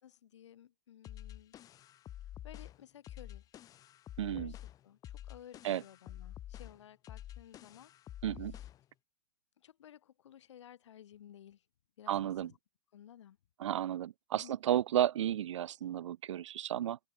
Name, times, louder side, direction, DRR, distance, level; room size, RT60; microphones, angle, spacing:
voice 1, 0.0-1.6 2.4-3.4 4.3-7.9 9.6-11.6 12.0-12.6 12.9-13.4 14.3-14.6, left 10 dB, 75° left, 4.5 m, -55 dB
sound 1, 1.0-8.9, left 12 dB, 25° left, 0.6 m, -48 dB
voice 2, 4.2-4.5 5.6-5.8 8.2-8.6 12.1-12.5 13.6-17.0, right 11 dB, 85° right, 0.4 m, -33 dB
hypercardioid pair, 125°, 15 cm